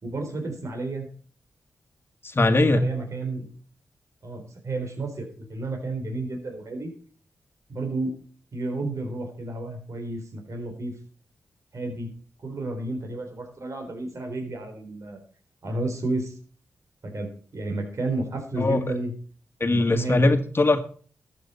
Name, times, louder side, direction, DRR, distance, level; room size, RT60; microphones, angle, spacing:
voice 1, 0.0-1.1 2.7-3.5 4.2-6.9 7.7-8.2 8.5-10.9 11.7-12.1 12.4-15.2 15.6-16.4 17.0-19.1 19.7-20.3, right 2 dB, 60° right, 4 dB, 4.1 m, -31 dB
voice 2, 2.2-2.8 18.6-18.8 19.6-20.8, left 2 dB, 40° left, 8 dB, 1.7 m, -20 dB
13.5 x 7.9 x 5.6 m, 0.43 s
supercardioid pair, 40°, 6 cm